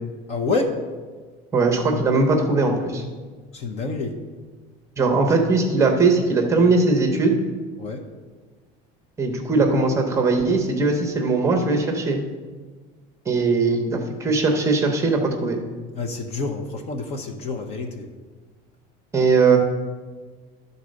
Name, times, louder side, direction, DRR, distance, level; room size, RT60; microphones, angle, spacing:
voice 1, 0.3-0.8 3.5-4.1 7.8-8.0 15.9-18.1, left 3 dB, 35° left, 5 dB, 0.8 m, -27 dB
voice 2, 1.5-3.0 5.0-7.4 9.2-12.2 13.3-15.6 19.1-19.6, right 3 dB, 15° right, 3 dB, 0.8 m, -20 dB
11.5 x 4.0 x 6.4 m, 1.4 s
cardioid pair, 180°, 18 cm